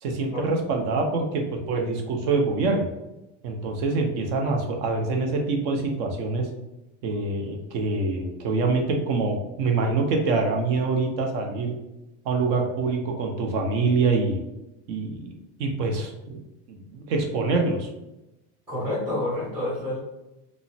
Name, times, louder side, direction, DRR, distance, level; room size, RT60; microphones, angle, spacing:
voice 1, 0.0-2.9 3.4-6.5 7.0-11.7 12.2-14.4 14.9-15.3 15.6-17.9, right 3 dB, 60° right, 2 dB, 0.6 m, -25 dB
voice 2, 18.7-20.0, left 1 dB, 5° right, -9 dB, 0.7 m, -28 dB
3.0 x 2.0 x 2.6 m, 0.95 s
cardioid pair, 175°, 36 cm